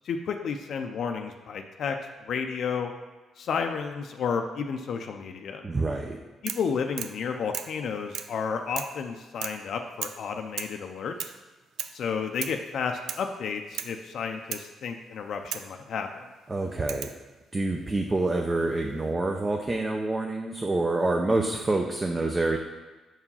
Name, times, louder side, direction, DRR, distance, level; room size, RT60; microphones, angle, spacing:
voice 1, 0.0-2.0 2.2-2.9 3.4-5.6 6.4-11.3 11.9-16.2, left 6 dB, 65° left, 5 dB, 0.5 m, -32 dB
voice 2, 5.6-6.2 16.5-17.1 17.5-22.6, right 2 dB, 25° right, 2 dB, 0.6 m, -27 dB
sound 1, 6.5-6.7 7.0-7.2 7.5-7.8 8.1-8.4 8.8-9.0 9.4-9.7 10.0-10.2 10.6-10.8 11.2-11.4 11.8-12.0 12.4-12.6 13.1-13.3 13.7-14.0 14.5-14.7 15.5-15.7 16.9-17.2 18.4-18.9, right 9 dB, 80° right, 0.4 m, -36 dB
5.6 x 4.8 x 5.5 m, 1.2 s
cardioid pair, 90°, 0 cm